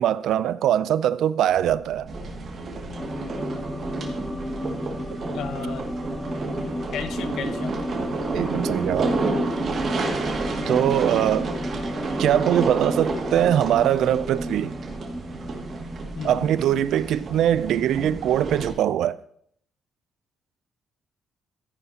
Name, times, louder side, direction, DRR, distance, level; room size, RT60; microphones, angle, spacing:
voice 1, 0.0-2.1 8.3-9.2 10.7-11.5 12.2-14.7 16.2-19.2, right 11 dB, 80° right, 0.4 m, -22 dB
Bird, 1.5-3.9, left 4 dB, 50° left, 3.1 m, -50 dB
sound 1, 2.1-18.7, right 3 dB, 50° right, 2.1 m, -31 dB
sound 2, 3.0-17.5 17.8-17.9, equal, 10° left, 1.7 m, -33 dB
voice 2, 5.3-5.9 6.9-7.8 16.1-16.5, left 7 dB, 80° left, 1.0 m, -34 dB
13.5 x 10.0 x 2.8 m
cardioid pair, 90°, 0 cm